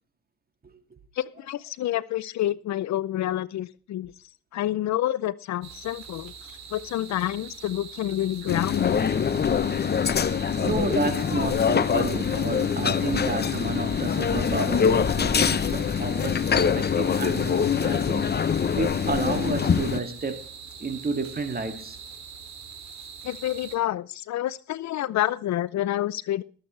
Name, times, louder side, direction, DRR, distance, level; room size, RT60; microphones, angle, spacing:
voice 1, 1.2-4.1 4.5-9.0 23.2-26.4, left 13 dB, 65° left, 0.6 m, -28 dB
sound 1, 5.6-23.8, right 6 dB, 65° right, 2.9 m, -43 dB
sound 2, 8.5-20.0, left 7 dB, 35° left, 0.8 m, -24 dB
voice 2, 10.6-20.5 20.8-22.0, right 3 dB, 30° right, 2.3 m, -31 dB
22.5 x 8.0 x 3.3 m
cardioid pair, 80°, 30 cm